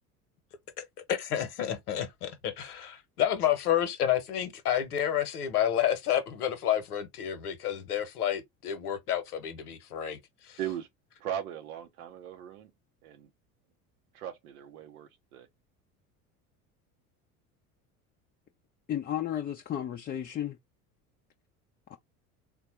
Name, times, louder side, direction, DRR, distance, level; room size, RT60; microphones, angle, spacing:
voice 1, 0.8-10.6, left 10 dB, 80° left, 1.0 m, -30 dB
voice 2, 11.2-12.7 13.0-13.3 14.1-15.5, right 10 dB, 70° right, 0.7 m, -38 dB
voice 3, 18.9-20.6 21.9-22.0, left 11 dB, 25° left, 0.4 m, -33 dB
3.5 x 2.2 x 2.9 m
hypercardioid pair, 70°, 45 cm